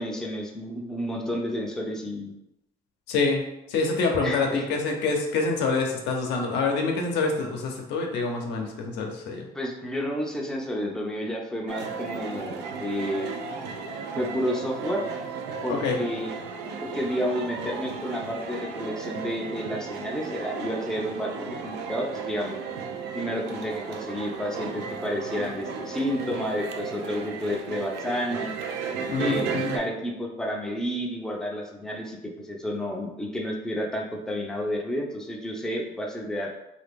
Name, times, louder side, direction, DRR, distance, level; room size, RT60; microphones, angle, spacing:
voice 1, 0.0-2.3 4.2-4.7 9.5-13.3 14.1-15.0 15.6-16.3 16.8-22.6 23.1-28.5 29.2-36.6, equal, 5° left, 0 dB, 0.5 m, -31 dB
voice 2, 3.1-3.4 3.7-9.5 15.7-16.0 29.1-29.8, left 4 dB, 85° left, 2 dB, 0.7 m, -26 dB
sound 1, 11.7-29.8, right 5 dB, 85° right, 0.5 m, -35 dB
2.9 x 2.5 x 3.4 m, 0.90 s
cardioid pair, 110°, 17 cm